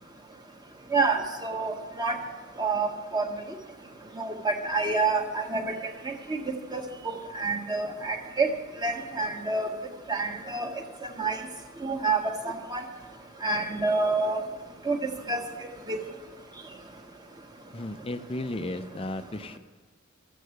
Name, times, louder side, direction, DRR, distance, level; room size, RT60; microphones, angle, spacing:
voice 1, 0.9-2.2 2.6-3.3 4.2-5.7 6.0-6.4 6.7-8.5 8.8-9.7 10.1-10.7 11.0-11.4 11.8-12.8 13.4-14.4 14.9-15.0 15.3-15.4 15.9-16.0, right 3 dB, 20° right, 3 dB, 1.4 m, -28 dB
voice 2, 17.7-19.6, left 1 dB, 25° left, 10 dB, 0.6 m, -34 dB
13.5 x 8.4 x 7.9 m, 1.2 s
head